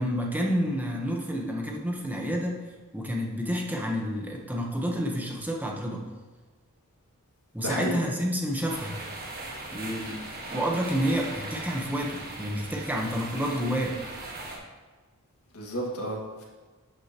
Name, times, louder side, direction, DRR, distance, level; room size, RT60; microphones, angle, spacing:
voice 1, 0.0-2.6 2.9-6.0 7.5-9.0 9.7-10.2 10.5-14.0, equal, 10° right, 0 dB, 1.0 m, -29 dB
voice 2, 7.6-8.0 15.5-16.4, equal, 85° left, -2 dB, 1.9 m, -32 dB
sound 1, 8.7-14.6, right 2 dB, 45° right, 1.5 m, -39 dB
11.5 x 6.4 x 2.9 m, 1.3 s
head